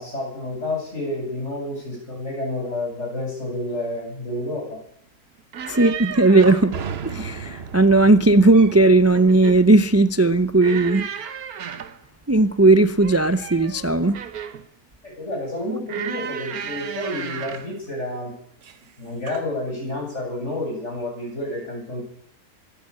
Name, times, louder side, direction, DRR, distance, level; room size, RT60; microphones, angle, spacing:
voice 1, 0.0-4.8 15.0-18.3 19.0-22.1, left 1 dB, 50° left, 8.2 m, -29 dB
sound 1, 5.4-6.7 8.2-8.8 9.1-9.7 10.6-12.0 13.0-14.7 15.9-17.7 18.6-18.9 19.3-19.5, right 8 dB, 85° right, 1.7 m, -34 dB
voice 2, 5.7-6.7 7.0-11.1 12.3-14.2, right 2 dB, 25° right, 0.3 m, -16 dB
sound 2, 6.7-10.4, right 6 dB, 50° right, 1.1 m, -36 dB
23.0 x 13.5 x 8.6 m
omnidirectional pair, 1.5 m